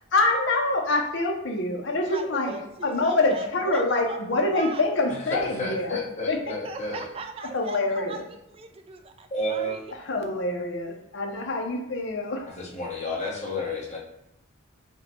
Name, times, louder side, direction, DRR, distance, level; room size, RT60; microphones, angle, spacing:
voice 1, 0.1-2.5 2.8-6.0 6.3-6.6 7.5-8.2 10.1-12.5, left 2 dB, 60° left, 2 dB, 0.7 m, -25 dB
voice 2, 2.0-4.8 6.6-9.9, right 4 dB, 30° right, 6 dB, 0.3 m, -39 dB
voice 3, 5.3-7.0 9.3-9.8 12.6-14.0, left 1 dB, 35° left, -3 dB, 1.1 m, -31 dB
5.4 x 2.2 x 4.2 m, 0.86 s
head